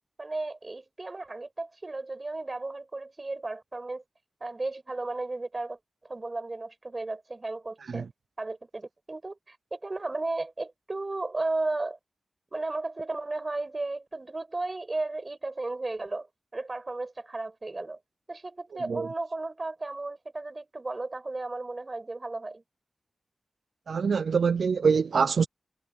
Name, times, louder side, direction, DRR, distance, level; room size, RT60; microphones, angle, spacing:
voice 1, 0.2-4.0 4.4-8.1 8.4-12.0 12.5-16.3 16.5-18.0 18.3-22.6, right 2 dB, 40° right, 5.5 m, -34 dB
voice 2, 23.9-25.5, right 5 dB, 80° right, 0.4 m, -24 dB
cardioid pair, 50°, 0 cm